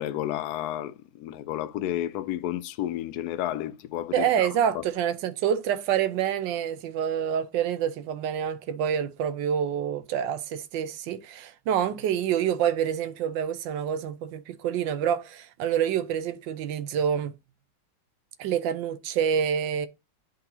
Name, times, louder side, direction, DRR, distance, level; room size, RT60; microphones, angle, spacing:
voice 1, 0.0-4.5 4.7-4.8, left 12 dB, 75° left, 0.9 m, -31 dB
voice 2, 4.1-17.3 18.4-19.9, right 9 dB, 80° right, 1.3 m, -27 dB
10.5 x 3.9 x 2.7 m
omnidirectional pair, 2.1 m